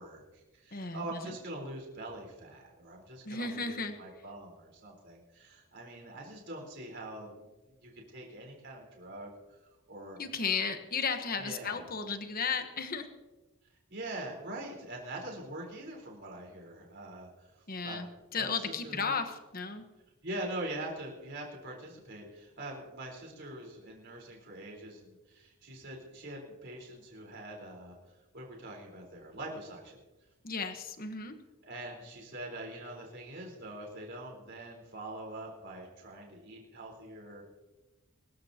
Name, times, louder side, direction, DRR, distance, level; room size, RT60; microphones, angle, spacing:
voice 1, 0.0-7.5 7.8-9.3 9.9-10.2 11.4-11.9 13.9-17.5 17.8-18.0 18.3-19.2 20.2-28.0 28.3-30.0 31.6-37.4, right 1 dB, 50° right, -1 dB, 4.2 m, -43 dB
voice 2, 0.7-1.2 3.3-4.0 10.2-13.1 17.7-18.1 18.3-19.8 30.4-31.4, left 5 dB, 40° left, 7 dB, 1.2 m, -34 dB
24.0 x 14.0 x 2.9 m, 1.1 s
head